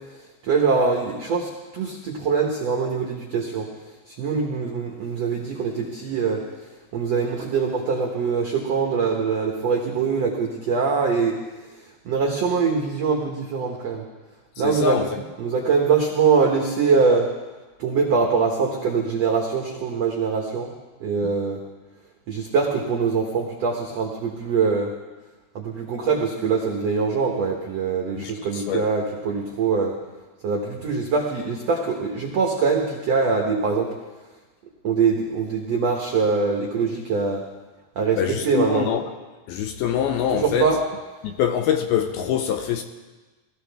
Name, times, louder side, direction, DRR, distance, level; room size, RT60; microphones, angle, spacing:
voice 1, 0.4-3.7 4.1-6.4 6.9-11.4 12.0-14.0 14.6-15.0 15.4-17.3 17.8-20.7 21.0-21.6 22.3-24.9 25.5-29.9 30.4-33.9 34.8-37.4 37.9-38.9 40.3-40.8, right 5 dB, 85° right, 1.4 m, -23 dB
voice 2, 14.6-15.1 28.2-28.9 38.2-39.0 39.5-40.7 41.2-42.8, left 9 dB, 80° left, 2.4 m, -24 dB
20.0 x 14.0 x 3.4 m
omnidirectional pair, 4.9 m